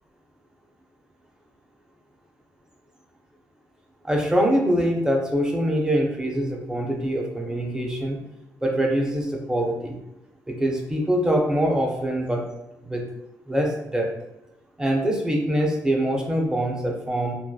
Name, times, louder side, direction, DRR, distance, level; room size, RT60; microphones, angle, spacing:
voice 1, 4.0-8.2 8.6-10.0 10.5-12.4 12.8-13.0 13.5-14.1 14.8-17.3, equal, 10° right, 1 dB, 0.4 m, -24 dB
2.6 x 2.1 x 2.3 m, 0.95 s
cardioid pair, 115°, 6 cm